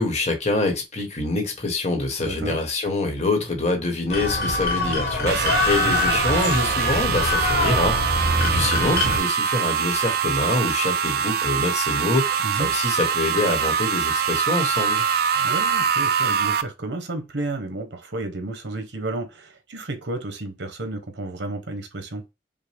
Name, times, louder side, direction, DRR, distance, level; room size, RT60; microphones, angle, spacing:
voice 1, 0.0-8.0 8.4-15.0, left 2 dB, 40° left, 1.2 m, -25 dB
voice 2, 2.2-2.6 5.8-6.0 6.3-6.5 8.2-8.8 12.4-12.7 15.4-22.2, right 2 dB, 75° right, 1.1 m, -32 dB
sound 1, 4.1-9.2, left 2 dB, 60° left, 1.3 m, -24 dB
sound 2, 5.3-16.6, right 7 dB, 55° right, 0.4 m, -23 dB
5.5 x 2.2 x 3.4 m
head